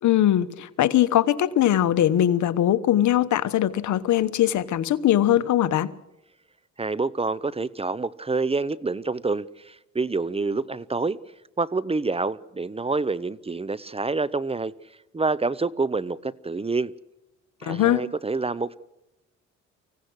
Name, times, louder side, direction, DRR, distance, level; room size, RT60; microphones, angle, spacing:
voice 1, 0.0-5.9 17.6-18.0, left 12 dB, 70° left, 1.2 m, -21 dB
voice 2, 6.8-11.2 11.6-14.7 15.1-16.9 17.6-18.8, right 3 dB, 20° right, 0.8 m, -27 dB
25.0 x 16.5 x 6.4 m
cardioid pair, 90°, 30 cm